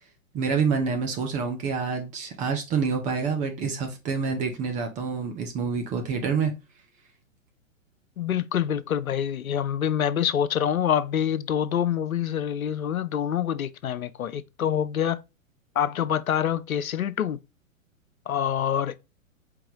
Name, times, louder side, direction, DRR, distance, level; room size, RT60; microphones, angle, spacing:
voice 1, 0.3-6.5, right 5 dB, 20° right, 0.6 m, -27 dB
voice 2, 8.2-15.2 15.8-17.4 18.3-19.0, left 9 dB, 90° left, 0.6 m, -26 dB
4.7 x 2.8 x 3.7 m
hypercardioid pair, 115°, 41 cm